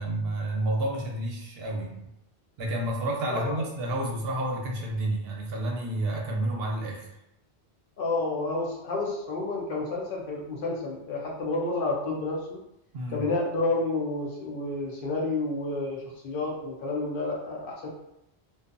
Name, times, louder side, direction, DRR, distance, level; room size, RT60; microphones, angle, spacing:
voice 1, 0.0-2.0 2.6-7.1 12.9-13.2, right 1 dB, 70° right, 0 dB, 0.8 m, -30 dB
voice 2, 3.3-3.6 8.0-12.6 13.1-17.9, left 2 dB, 60° left, -2 dB, 0.7 m, -30 dB
2.6 x 2.2 x 2.5 m, 0.84 s
omnidirectional pair, 1.1 m